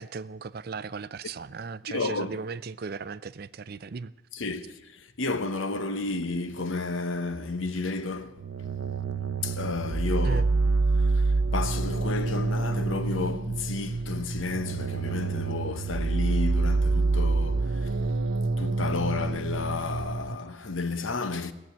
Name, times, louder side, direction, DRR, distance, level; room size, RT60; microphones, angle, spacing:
voice 1, 0.0-4.1 10.2-10.5, right 4 dB, 50° right, 0.4 m, -37 dB
voice 2, 1.9-2.3 4.3-4.8 5.2-8.3 9.4-10.4 11.1-11.2 11.5-17.9 18.6-21.5, left 3 dB, 80° left, 1.0 m, -31 dB
sound 1, 8.4-20.3, right 3 dB, 90° right, 0.7 m, -27 dB
17.0 x 7.6 x 9.6 m
head